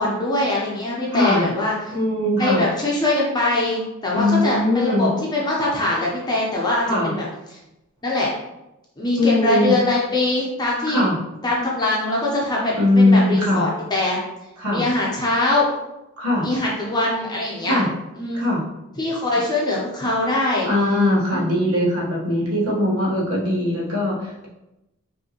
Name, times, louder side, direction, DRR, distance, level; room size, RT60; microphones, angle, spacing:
voice 1, 0.0-1.9 2.4-7.2 8.0-8.3 9.0-11.0 11.4-14.2 14.7-15.7 16.4-17.8 18.2-18.4 19.0-20.7 21.3-21.5, left 2 dB, 20° left, -4 dB, 0.7 m, -22 dB
voice 2, 1.1-1.5 1.9-2.6 4.1-5.1 6.8-7.1 9.2-9.8 10.9-11.2 12.7-13.7 14.6-14.8 16.2-16.5 17.7-17.9 18.3-18.6 20.6-24.5, left 1 dB, 90° right, -4 dB, 1.2 m, -20 dB
5.2 x 2.7 x 2.9 m, 0.93 s
head